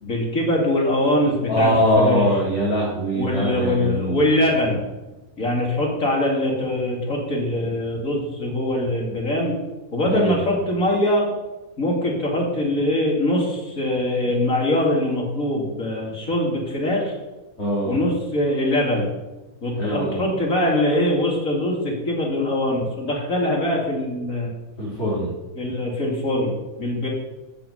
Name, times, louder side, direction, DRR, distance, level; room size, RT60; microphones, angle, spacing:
voice 1, 0.0-1.7 2.0-2.3 3.1-4.9 5.4-9.6 9.9-11.3 11.8-17.1 17.9-19.1 19.6-24.5 25.6-26.5 26.8-27.1, left 1 dB, 65° left, -2 dB, 3.3 m, -22 dB
voice 2, 1.5-4.2 10.0-10.4 17.6-17.9 19.8-20.2 24.8-25.3, equal, 45° left, -8 dB, 4.1 m, -22 dB
13.0 x 6.0 x 8.1 m, 1.1 s
omnidirectional pair, 1.6 m